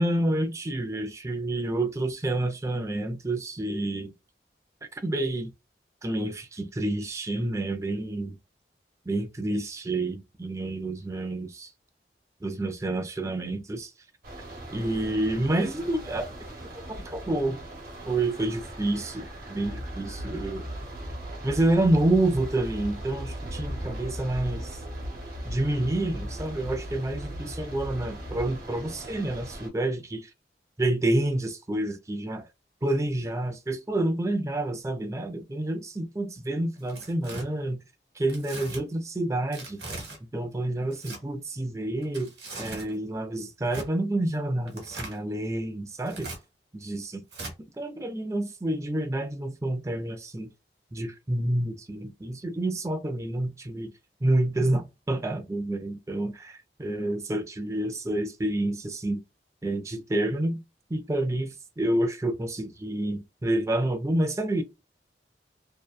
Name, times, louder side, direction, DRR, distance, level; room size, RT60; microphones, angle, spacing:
voice 1, 0.0-4.1 4.8-5.5 6.0-8.3 9.1-11.7 12.4-13.9 14.7-16.2 16.9-17.6 18.1-20.7 21.4-24.8 25.4-30.3 30.8-32.5 32.8-37.8 38.1-39.8 40.2-42.3 42.6-46.3 46.7-47.2 47.8-50.5 50.9-53.9 54.2-59.2 59.6-60.6 60.9-64.6, right 1 dB, 15° right, 0.4 m, -28 dB
sound 1, 14.2-29.7, right 1 dB, 50° right, 1.0 m, -41 dB
sound 2, 19.6-28.5, equal, 50° left, 0.6 m, -39 dB
Tearing, 36.8-37.4 38.3-38.8 39.5-40.2 40.9-41.2 42.0-42.9 43.7-43.9 44.7-45.2 46.0-46.4 47.3-47.5, right 2 dB, 70° right, 0.9 m, -39 dB
2.7 x 2.2 x 2.2 m
head